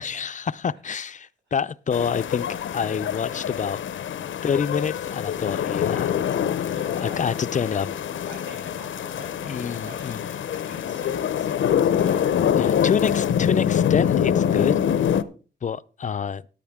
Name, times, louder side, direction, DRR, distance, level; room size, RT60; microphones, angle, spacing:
voice 1, 0.0-3.8 4.4-6.1 7.0-7.9 9.5-10.3 12.5-14.8 15.6-16.4, left 7 dB, 40° left, 0.4 m, -27 dB
sound 1, 1.9-15.2, left 9 dB, 90° left, 0.7 m, -25 dB
voice 2, 6.7-7.2 8.3-12.5, right 2 dB, 70° right, 6.7 m, -46 dB
14.5 x 10.0 x 3.5 m
wide cardioid pair, 115°, 20 cm